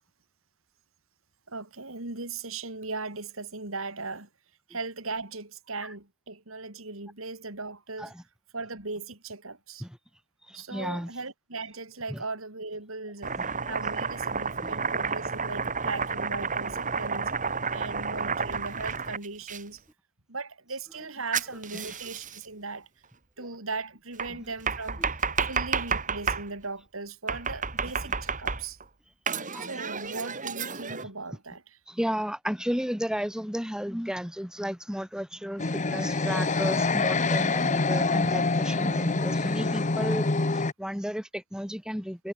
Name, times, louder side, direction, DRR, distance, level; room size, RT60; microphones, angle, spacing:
voice 1, 1.5-4.3 4.7-8.1 8.5-9.8 10.5-13.3 13.6-17.3 17.7-19.8 20.3-22.9 23.4-25.0 25.5-28.8 29.6-31.6, right 3 dB, 65° right, 4.1 m, -38 dB
voice 2, 10.5-11.1 12.1-12.2 13.4-13.5 14.6-14.8 21.7-22.0 23.4-23.5 24.3-24.4 25.0-25.1 29.5-29.7 30.9-31.0 31.9-40.3 40.5-42.3, equal, 5° right, 7.6 m, -33 dB
Domestic sounds home sounds, 13.2-19.6 21.3-22.4 24.2-26.5 27.3-28.8 29.3-31.0, right 5 dB, 35° right, 4.5 m, -31 dB
sound 1, 35.6-40.7, left 3 dB, 35° left, 1.1 m, -26 dB
head